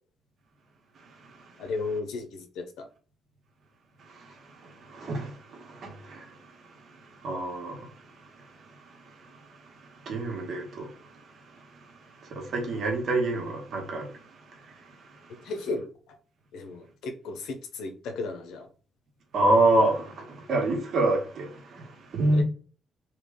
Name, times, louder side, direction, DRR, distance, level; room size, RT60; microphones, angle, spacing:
voice 1, 0.9-1.6 4.0-15.5 19.3-22.4, right 2 dB, 60° right, 1.5 m, -29 dB
voice 2, 1.6-2.9 15.4-16.2 16.5-18.7 22.3-22.4, left 3 dB, 85° left, 0.8 m, -35 dB
3.4 x 2.9 x 3.8 m
cardioid pair, 90°, 0 cm